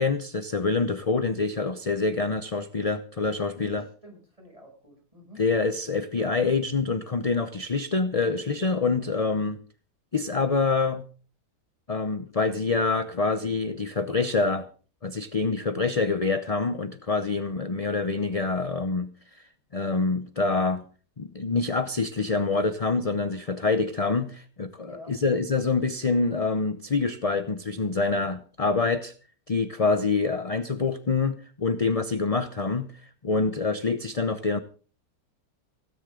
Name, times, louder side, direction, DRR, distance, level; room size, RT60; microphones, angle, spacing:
voice 1, 0.0-3.8 5.4-9.6 10.1-11.0 11.9-14.7 15.0-19.1 19.3-19.4 19.7-20.8 21.2-29.1 29.5-32.9 33.2-34.6, left 4 dB, 35° left, 10 dB, 0.6 m, -26 dB
voice 2, 3.5-5.5 9.3-9.5 24.8-25.2, left 1 dB, 20° right, 1 dB, 7.2 m, -49 dB
17.0 x 17.0 x 3.8 m, 0.39 s
omnidirectional pair, 1.8 m